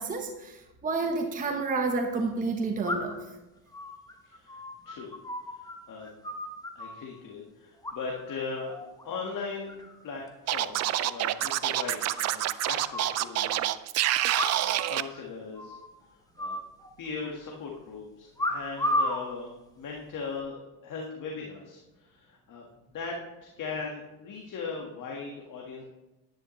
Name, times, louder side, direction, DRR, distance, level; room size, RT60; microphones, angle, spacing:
voice 1, 0.0-3.2, right 3 dB, 15° right, 3 dB, 1.1 m, -30 dB
sound 1, 1.1-1.2 2.9-3.3 3.7-5.8 6.0-7.1 7.8-8.4 8.7-9.0 9.4-10.0 10.3-10.4 10.6-10.7 11.0-11.1 11.4-11.5 12.2-13.2 14.3-14.9 15.1-15.2 15.6-15.9 16.4-17.3 18.4-19.2 20.0-20.3, left 1 dB, 10° left, 1.2 m, -33 dB
voice 2, 4.2-5.1 5.5-6.1 6.8-8.7 9.0-13.7 14.5-15.8 16.4-16.6 17.0-22.7 22.9-23.2 23.6-25.8, left 4 dB, 45° left, -1 dB, 1.7 m, -39 dB
Scratching (performance technique), 10.5-15.0, right 14 dB, 40° right, 0.4 m, -27 dB
10.5 x 10.0 x 3.2 m, 1.0 s
supercardioid pair, 110°, 46 cm